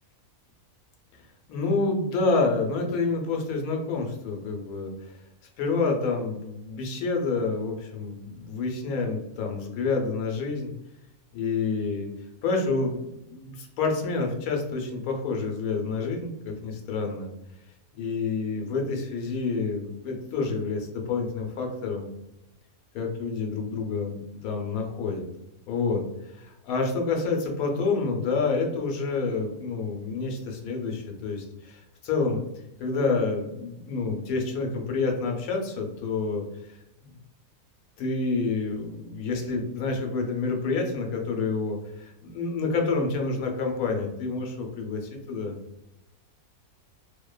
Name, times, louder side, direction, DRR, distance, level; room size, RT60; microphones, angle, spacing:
voice 1, 1.5-5.2 5.6-10.7 11.3-12.1 12.4-17.3 17.9-22.1 22.9-25.3 25.7-32.4 32.8-37.2 38.0-45.6, left 4 dB, 80° left, 2 dB, 1.1 m, -28 dB
2.7 x 2.1 x 2.2 m, 0.87 s
omnidirectional pair, 1.5 m